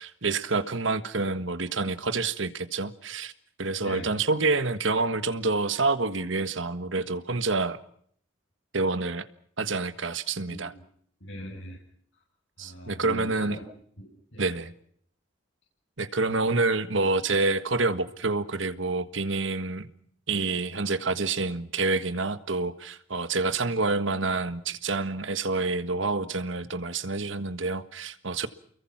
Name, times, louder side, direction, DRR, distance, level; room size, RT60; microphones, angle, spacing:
voice 1, 0.0-3.3 3.6-7.8 8.7-9.3 9.6-10.7 12.6-13.6 14.4-14.7 16.0-19.9 20.3-28.5, right 3 dB, 85° right, 1.6 m, -27 dB
voice 2, 10.5-10.8 11.2-11.8 12.6-13.7 14.0-14.5, equal, 75° left, 7.7 m, -40 dB
30.0 x 22.5 x 6.0 m
head